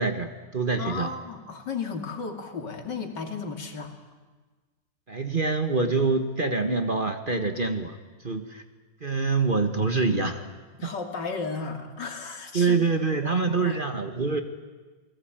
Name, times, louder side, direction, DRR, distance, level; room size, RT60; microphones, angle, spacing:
voice 1, 0.0-1.1 5.1-8.0 8.2-8.6 9.0-10.5 10.8-10.9 12.5-14.4, right 4 dB, 30° right, 7 dB, 1.4 m, -25 dB
voice 2, 0.8-3.9 10.8-12.8 13.2-13.8, left 4 dB, 75° left, 4 dB, 3.1 m, -34 dB
29.0 x 19.5 x 8.9 m, 1.4 s
omnidirectional pair, 1.9 m